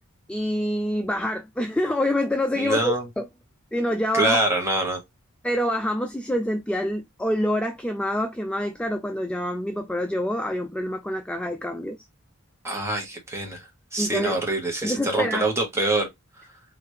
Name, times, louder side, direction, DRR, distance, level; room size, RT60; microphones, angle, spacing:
voice 1, 0.3-3.3 3.7-4.4 5.4-12.0 14.0-14.4 14.8-15.4, left 1 dB, 5° left, 0.4 m, -26 dB
voice 2, 2.5-3.1 4.1-5.0 12.6-16.1, right 2 dB, 15° right, 1.3 m, -25 dB
4.6 x 2.8 x 3.1 m
head